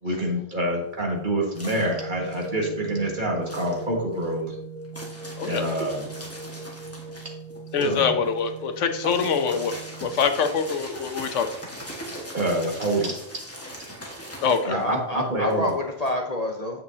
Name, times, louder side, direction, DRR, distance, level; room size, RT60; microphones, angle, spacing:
voice 1, 0.0-4.5 5.5-6.1 7.8-8.1 12.3-13.2 14.6-15.7, right 1 dB, 45° right, -1 dB, 1.9 m, -26 dB
sound 1, 0.6-3.0 3.4-16.1, equal, 10° left, 1.7 m, -40 dB
sound 2, 1.7-10.2, right 3 dB, 55° left, 2.7 m, -39 dB
voice 2, 7.7-11.5 14.4-14.7, left 6 dB, 80° left, 8 dB, 1.1 m, -24 dB
voice 3, 14.6-16.8, left 1 dB, 40° left, 2 dB, 0.8 m, -28 dB
8.8 x 7.5 x 2.8 m, 0.76 s
omnidirectional pair, 1.2 m